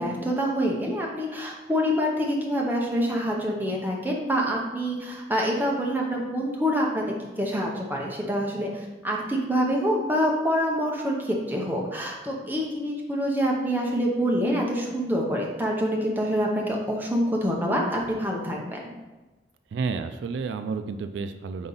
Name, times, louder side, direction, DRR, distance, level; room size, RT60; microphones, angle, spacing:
voice 1, 0.0-18.9, equal, 10° right, -2 dB, 0.8 m, -26 dB
voice 2, 19.7-21.7, right 4 dB, 75° right, 9 dB, 0.3 m, -31 dB
5.4 x 4.3 x 4.0 m, 1.2 s
head